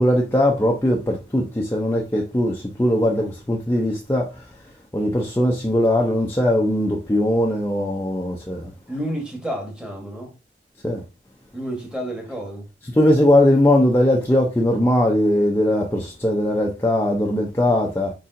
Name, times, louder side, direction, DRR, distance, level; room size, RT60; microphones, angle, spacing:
voice 1, 0.0-4.4 4.9-8.7 10.8-11.0 12.8-18.1, left 1 dB, 15° left, 0.5 m, -20 dB
voice 2, 8.9-10.3 11.5-12.7, equal, 5° right, 1.1 m, -30 dB
4.7 x 4.1 x 2.5 m
head